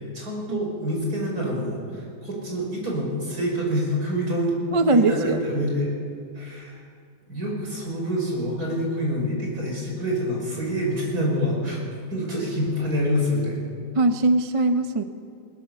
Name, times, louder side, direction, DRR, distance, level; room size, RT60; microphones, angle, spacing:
voice 1, 0.0-4.6 4.9-5.9 6.3-6.8 7.3-11.8 12.1-13.7, equal, 50° right, -2 dB, 6.2 m, -26 dB
voice 2, 4.7-5.4 13.9-15.0, right 2 dB, 35° right, 7 dB, 0.5 m, -20 dB
21.5 x 20.0 x 7.3 m, 2.2 s
omnidirectional pair, 2.0 m